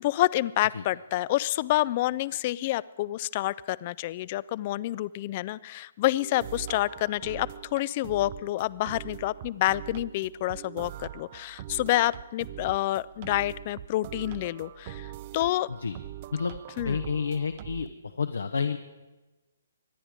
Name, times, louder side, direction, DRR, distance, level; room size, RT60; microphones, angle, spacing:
voice 1, 0.0-15.7 16.8-17.0, left 16 dB, 35° left, 20 dB, 0.4 m, -28 dB
sound 1, 6.1-17.9, right 12 dB, 35° right, 0.5 m, -42 dB
voice 2, 16.8-17.9 18.2-18.8, left 5 dB, 75° left, 8 dB, 0.8 m, -29 dB
24.5 x 10.0 x 4.9 m, 1.1 s
figure-of-eight pair, 140°, 0 cm